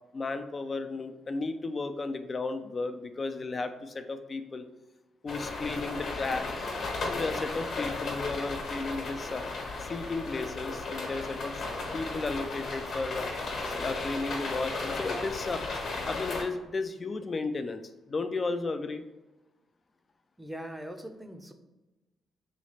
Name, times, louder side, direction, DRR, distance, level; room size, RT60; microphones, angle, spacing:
voice 1, 0.1-4.7 5.2-6.7 7.0-9.4 9.8-11.6 11.9-13.3 13.7-15.6 16.1-17.8 18.1-19.0, left 3 dB, 40° left, 8 dB, 0.4 m, -34 dB
sound 1, 5.3-16.4, left 3 dB, 65° left, 1.2 m, -35 dB
voice 2, 20.4-21.5, right 1 dB, 10° right, 5 dB, 0.6 m, -41 dB
3.2 x 3.1 x 4.0 m, 1.1 s
hypercardioid pair, 50°, 0 cm